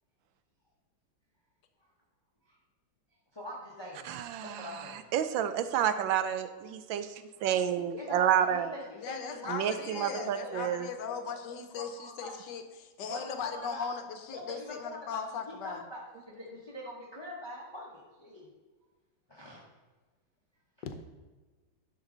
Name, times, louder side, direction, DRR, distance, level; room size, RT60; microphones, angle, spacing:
voice 1, 3.3-4.1 4.4-5.1 8.0-9.5 9.9-10.6 11.3-11.4 11.8-12.3 13.1-13.9 14.3-15.2 15.5-16.0 16.3-18.4 19.3-19.6, left 1 dB, 15° left, -4 dB, 1.0 m, -43 dB
voice 2, 4.0-7.1 7.4-8.7 9.5-10.9, right 9 dB, 75° right, 11 dB, 1.3 m, -30 dB
voice 3, 8.9-15.8, left 6 dB, 65° left, 7 dB, 1.4 m, -38 dB
10.5 x 6.2 x 3.9 m, 1.3 s
omnidirectional pair, 2.2 m